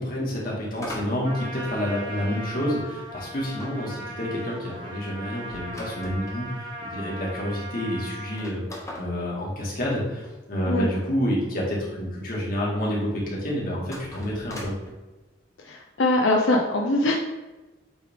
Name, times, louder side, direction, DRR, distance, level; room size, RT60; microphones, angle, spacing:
voice 1, 0.0-14.8, equal, 45° left, -4 dB, 1.9 m, -29 dB
sound 1, 0.8-2.3 3.6-6.4 7.1-7.2 7.4-7.5 8.2-10.4 13.8-14.9, left 1 dB, 15° left, 1.0 m, -41 dB
Trumpet, 1.2-8.5, equal, 25° right, 1.2 m, -38 dB
voice 2, 15.6-17.1, left 2 dB, 80° left, 0 dB, 0.6 m, -22 dB
8.0 x 3.4 x 3.6 m, 1.1 s
head